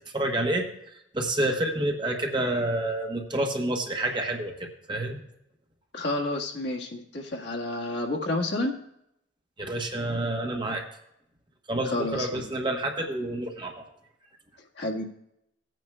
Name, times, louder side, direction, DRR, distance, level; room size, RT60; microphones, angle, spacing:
voice 1, 0.1-0.7 1.1-4.5 4.9-5.2 9.6-10.8 11.7-13.7, right 1 dB, 25° right, 2 dB, 1.0 m, -28 dB
voice 2, 5.9-8.7 11.8-12.5 14.7-15.0, left 2 dB, 60° left, -1 dB, 1.6 m, -30 dB
18.0 x 9.1 x 2.3 m, 0.79 s
head